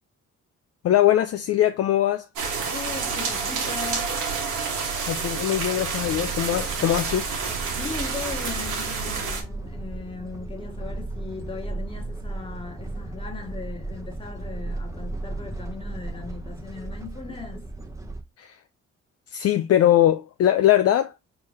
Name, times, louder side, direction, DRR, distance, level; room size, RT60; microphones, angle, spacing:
voice 1, 0.8-2.3 5.1-7.3 18.4-18.6 19.3-21.1, left 12 dB, 55° left, 0.5 m, -21 dB
sound 1, 2.4-9.4, right 5 dB, 90° right, 1.7 m, -29 dB
voice 2, 2.7-4.1 7.7-17.7, left 4 dB, 20° left, 1.6 m, -38 dB
sound 2, 6.0-18.2, right 2 dB, 10° right, 0.9 m, -35 dB
4.5 x 3.9 x 3.0 m
cardioid pair, 90°, 30 cm